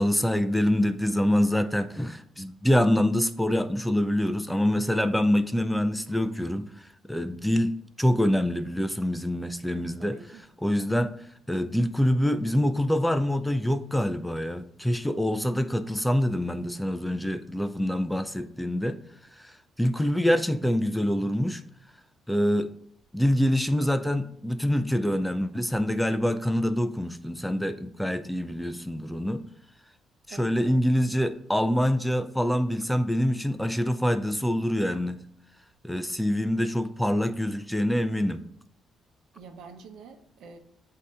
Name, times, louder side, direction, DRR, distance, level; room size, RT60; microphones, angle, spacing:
voice 1, 0.0-7.7 8.0-10.2 10.6-11.1 11.5-19.0 19.3-21.6 22.3-22.7 23.1-29.4 30.3-35.2 35.8-38.4, equal, 5° left, 0.4 m, -25 dB
voice 2, 10.0-10.4 30.3-30.8 39.3-40.6, right 5 dB, 80° right, 0.9 m, -46 dB
8.2 x 2.8 x 5.4 m
cardioid pair, 90°, 0 cm